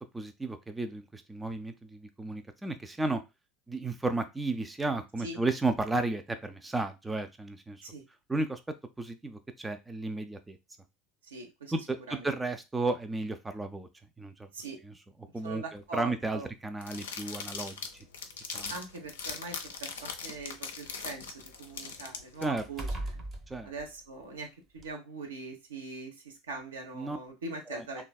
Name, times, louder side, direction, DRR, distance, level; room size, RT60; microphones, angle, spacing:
voice 1, 0.0-3.2 3.7-7.8 8.3-8.6 9.0-10.6 11.7-13.9 14.2-14.5 14.8-14.9 15.3-18.1 18.5-18.7 22.4-22.6 23.5-23.7 26.9-27.2 27.7-28.0, right 2 dB, 10° right, 8 dB, 0.4 m, -33 dB
voice 2, 11.3-11.7 12.1-12.3 14.5-14.8 15.4-16.5 18.7-22.9 23.6-24.5 24.7-28.0, right 3 dB, 75° right, 2 dB, 0.7 m, -42 dB
sound 1, 15.8-15.9 17.0-17.1 17.5-17.7 18.6-20.6 21.0-24.4 24.8-24.9, right 1 dB, 30° right, 0.7 m, -42 dB
sound 2, 16.8-22.4, left 5 dB, 75° left, 0.4 m, -40 dB
3.2 x 2.3 x 2.3 m, 0.24 s
figure-of-eight pair, 75°, 0 cm